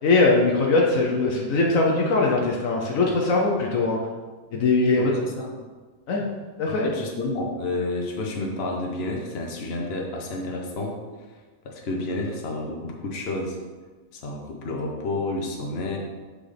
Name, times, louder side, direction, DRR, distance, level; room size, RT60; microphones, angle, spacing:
voice 1, 0.0-4.0 4.5-5.1 6.1-6.2 6.6-6.9, left 3 dB, 70° left, -1 dB, 1.2 m, -21 dB
voice 2, 5.0-5.5 6.7-11.0 11.3-13.6 14.1-16.0, left 2 dB, 50° left, 0 dB, 1.1 m, -30 dB
6.5 x 5.9 x 3.4 m, 1.4 s
omnidirectional pair, 1.5 m